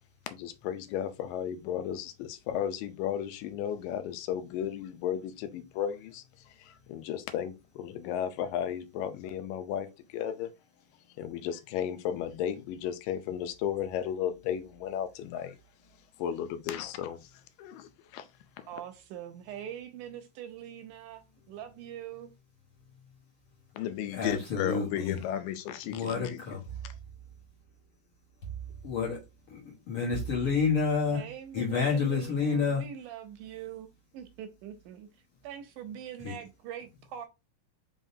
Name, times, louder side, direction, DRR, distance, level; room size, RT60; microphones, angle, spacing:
voice 1, 0.3-6.2 6.6-9.9 10.1-10.5 11.2-15.6 16.2-17.3 17.6-18.3 18.6-18.7 23.8-26.4 26.8-26.9, left 10 dB, 85° left, 2.3 m, -34 dB
voice 2, 18.7-22.3 31.1-37.3, right 10 dB, 80° right, 1.9 m, -43 dB
voice 3, 24.1-25.2 25.8-26.6 28.8-29.2 29.5-31.2 31.5-32.8 36.2-36.3, left 5 dB, 55° left, 1.6 m, -29 dB
sound 1, 26.6-27.8 28.4-29.5 30.1-31.2, right 8 dB, 35° left, 2.3 m, -42 dB
5.1 x 3.8 x 2.7 m
omnidirectional pair, 3.9 m